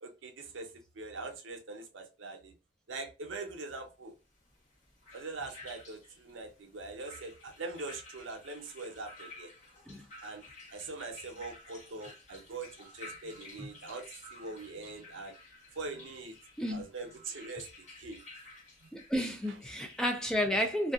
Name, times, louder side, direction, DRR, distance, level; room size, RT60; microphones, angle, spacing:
voice 1, 0.0-2.5 2.9-4.1 5.1-9.5 10.2-10.4 10.7-15.3 15.8-16.4 16.7-17.7 18.0-18.2 18.8-18.9, right 3 dB, 90° right, 0.6 m, -42 dB
sound 1, 4.4-20.3, left 2 dB, 40° left, 1.0 m, -53 dB
voice 2, 18.9-20.9, equal, 5° left, 0.3 m, -31 dB
2.6 x 2.3 x 2.3 m
head